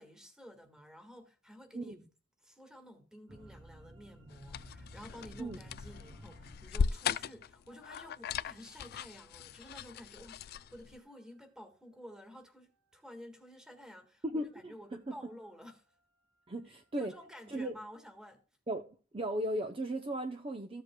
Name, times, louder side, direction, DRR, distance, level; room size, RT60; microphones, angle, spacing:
voice 1, 0.0-2.0 2.4-15.8 16.7-18.4, equal, 5° right, 1.6 m, -52 dB
sound 1, 3.3-8.7 9.9-10.9 11.4-11.5 13.9-14.0 14.5-17.5, right 1 dB, 80° right, 3.1 m, -57 dB
sound 2, 4.3-11.0, left 6 dB, 50° left, 0.3 m, -38 dB
voice 2, 14.2-15.1 16.5-17.1 17.5-17.7 18.7-20.8, right 1 dB, 25° right, 0.6 m, -37 dB
14.5 x 7.7 x 2.3 m
head